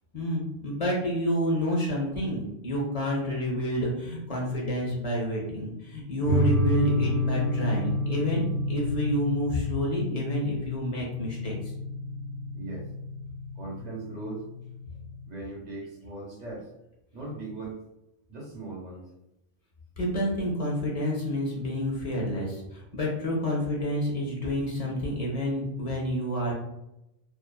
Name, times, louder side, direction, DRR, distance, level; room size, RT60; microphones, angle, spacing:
voice 1, 0.1-11.7 20.0-26.5, equal, 45° left, -2 dB, 0.5 m, -29 dB
sound 1, 6.3-15.2, left 1 dB, 85° right, 0.9 m, -30 dB
voice 2, 12.5-12.9 13.5-14.5 15.2-16.7 17.1-17.8 18.3-19.1, right 2 dB, 40° right, -3 dB, 0.8 m, -39 dB
2.6 x 2.3 x 2.2 m, 0.87 s
omnidirectional pair, 1.3 m